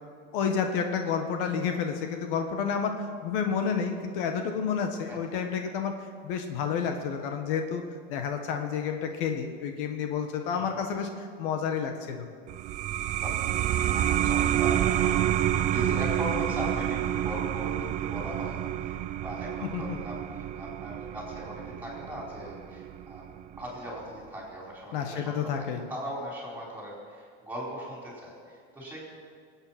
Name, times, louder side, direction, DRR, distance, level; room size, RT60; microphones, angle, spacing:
voice 1, 0.3-7.8 8.1-12.3 19.6-20.0 24.9-25.8, left 6 dB, 65° left, 5 dB, 1.5 m, -30 dB
sound 1, 12.5-23.6, right 11 dB, 25° right, 0.4 m, -29 dB
voice 2, 13.1-25.5 25.9-29.0, equal, 5° right, -4 dB, 4.6 m, -39 dB
20.5 x 8.9 x 6.0 m, 2.2 s
supercardioid pair, 150°, 29 cm